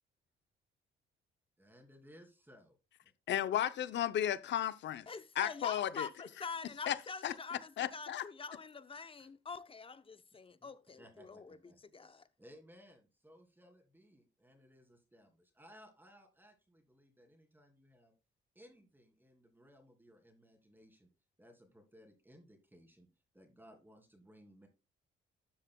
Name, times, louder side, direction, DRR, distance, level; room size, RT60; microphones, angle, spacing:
voice 1, 1.6-2.8 3.0-3.1 9.2-9.3 10.3-10.7 11.0-12.1 12.4-18.1 18.5-21.1 21.4-23.1 23.3-24.7, equal, 10° right, 2.7 m, -61 dB
voice 2, 3.3-5.1 5.4-6.1 6.9-7.0 7.2-8.3, left 11 dB, 65° left, 0.7 m, -34 dB
voice 3, 5.1-11.6 11.9-12.2, left 5 dB, 25° left, 0.7 m, -45 dB
12.5 x 7.3 x 2.3 m
cardioid pair, 90°, 20 cm